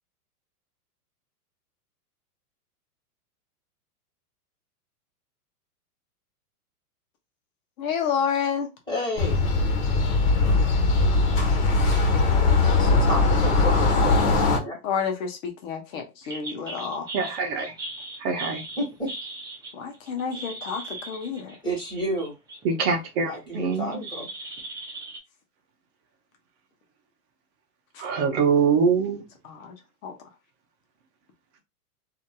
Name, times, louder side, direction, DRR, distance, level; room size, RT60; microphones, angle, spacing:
voice 1, 7.8-8.7 14.8-17.1 19.7-21.5 29.4-29.7 30.0-30.1, left 6 dB, 55° left, 1.0 m, -29 dB
voice 2, 8.9-9.4 12.8-14.8 18.8-19.1 21.6-22.3 23.3-24.3, equal, 10° left, 1.6 m, -31 dB
sound 1, 9.2-14.6, left 3 dB, 40° left, 1.3 m, -20 dB
sound 2, 16.2-22.6 23.0-25.2, right 2 dB, 10° right, 0.5 m, -38 dB
voice 3, 17.1-17.7 18.2-18.6 22.6-24.0 28.0-29.2, right 5 dB, 45° right, 0.8 m, -24 dB
2.8 x 2.7 x 2.2 m
hypercardioid pair, 135°, 46 cm